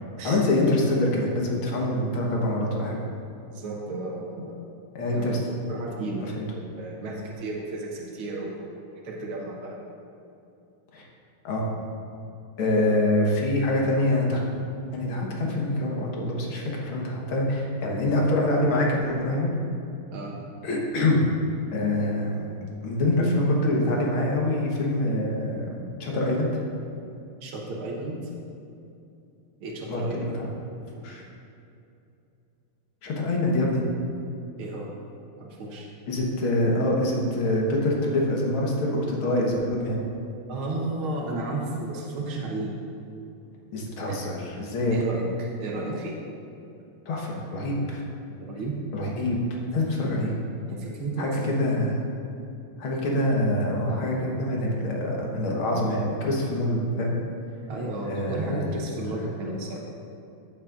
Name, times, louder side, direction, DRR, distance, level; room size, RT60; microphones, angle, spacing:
voice 1, 0.2-3.0 5.0-5.4 6.2-6.5 10.9-11.1 11.4-11.7 12.6-14.4 14.9-19.5 20.6-21.2 21.7-22.5 22.8-25.7 26.0-26.5 29.9-30.5 31.0-31.2 33.0-33.8 36.1-40.0 43.7-45.0 47.1-48.0 48.9-49.4 49.7-50.3 51.2-51.9 52.8-57.1 58.0-58.7 59.2-59.3, left 1 dB, 90° left, -2 dB, 2.2 m, -25 dB
voice 2, 3.4-4.5 5.1-5.3 5.7-6.3 6.5-8.8 9.0-9.8 12.8-13.0 20.1-20.4 27.4-28.2 29.6-30.3 34.6-34.9 35.4-35.9 40.5-42.7 44.1-44.2 44.9-46.2 48.5-48.8 50.0-50.2 50.7-51.6 57.7-59.8, right 2 dB, 85° right, -2 dB, 1.9 m, -33 dB
14.5 x 7.3 x 2.5 m, 2.7 s
omnidirectional pair, 2.3 m